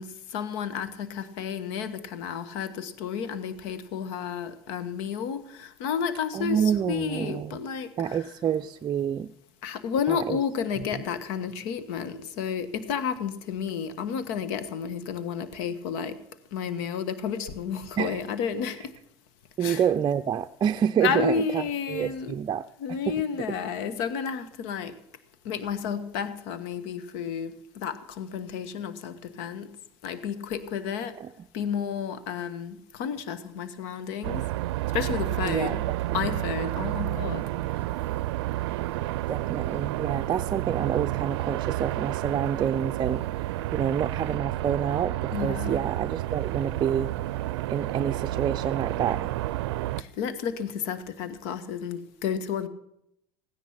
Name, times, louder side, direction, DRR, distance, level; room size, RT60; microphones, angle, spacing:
voice 1, 0.0-8.2 9.6-16.2 16.5-18.9 19.6-19.8 21.0-22.4 22.8-24.9 25.4-29.7 30.0-31.2 31.5-34.5 34.9-35.8 36.1-37.4 45.3-45.8 50.0-52.7, left 7 dB, 75° left, 13 dB, 1.4 m, -31 dB
voice 2, 6.3-7.6 8.0-9.3 10.1-10.4 18.0-18.2 19.6-23.6 31.2-31.5 35.4-35.8 36.1-36.2 39.3-43.2 43.7-47.1 47.7-49.3, right 8 dB, 35° right, 7 dB, 0.5 m, -28 dB
sound 1, 34.2-50.0, right 16 dB, 85° right, 0.5 m, -30 dB
15.5 x 10.5 x 5.9 m, 0.77 s
supercardioid pair, 100°, 13 cm